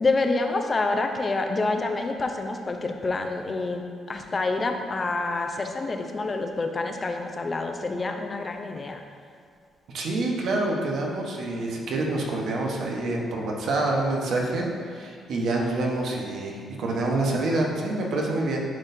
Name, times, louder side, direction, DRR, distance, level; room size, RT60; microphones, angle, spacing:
voice 1, 0.0-3.8 4.1-8.9, left 3 dB, 30° left, 4 dB, 0.6 m, -27 dB
voice 2, 9.9-18.6, right 2 dB, 70° right, -1 dB, 1.1 m, -27 dB
11.0 x 4.2 x 2.7 m, 2.2 s
cardioid pair, 90°, 0 cm